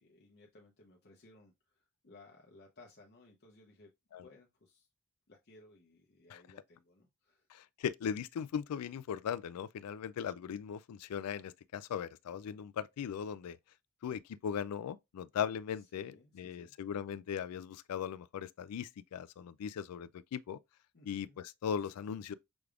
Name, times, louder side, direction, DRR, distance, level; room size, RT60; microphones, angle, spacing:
voice 1, 0.0-3.9 4.2-4.9 5.3-7.5 15.7-16.7 20.9-21.4, left 2 dB, 45° left, 0.8 m, -60 dB
voice 2, 7.5-13.6 14.0-20.6 21.1-22.3, left 8 dB, 85° left, 0.3 m, -39 dB
6.1 x 3.4 x 2.4 m
head